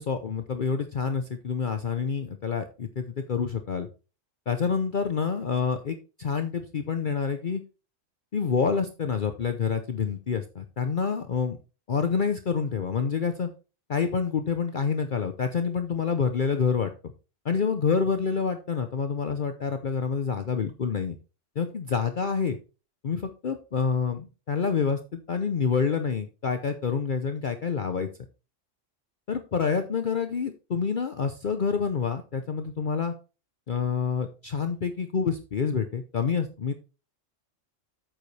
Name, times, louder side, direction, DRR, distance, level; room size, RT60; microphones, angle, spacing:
voice 1, 0.0-3.9 4.5-7.6 8.3-11.6 11.9-13.5 13.9-16.9 17.4-21.2 21.6-22.6 23.0-28.1 29.3-33.1 33.7-36.7, left 6 dB, 45° left, 7 dB, 0.8 m, -27 dB
8.7 x 8.1 x 3.3 m, 0.32 s
omnidirectional pair, 1.3 m